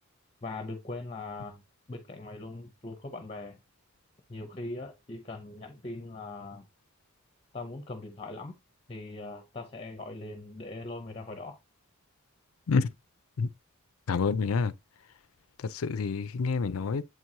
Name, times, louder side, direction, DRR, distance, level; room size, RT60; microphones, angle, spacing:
voice 1, 0.4-3.6 4.3-6.7 7.5-8.5 8.9-11.6, left 2 dB, 25° left, 0.7 m, -40 dB
voice 2, 14.1-14.7 15.6-17.0, left 5 dB, 75° left, 0.5 m, -28 dB
7.9 x 4.6 x 2.7 m
head